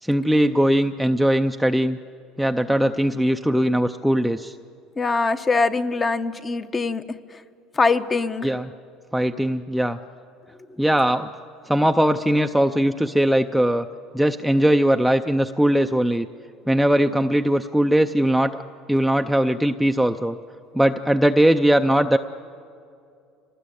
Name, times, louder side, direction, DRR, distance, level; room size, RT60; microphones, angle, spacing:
voice 1, 0.0-2.0 2.4-4.5 8.4-8.7 9.1-10.0 10.8-11.3 11.7-13.9 14.1-16.3 16.7-18.6 18.9-20.4 20.7-22.2, equal, ahead, 5 dB, 0.5 m, -20 dB
voice 2, 5.0-7.0 7.8-8.5, left 4 dB, 20° left, 11 dB, 0.9 m, -22 dB
26.5 x 19.5 x 8.7 m, 2.4 s
cardioid pair, 135°, 0 cm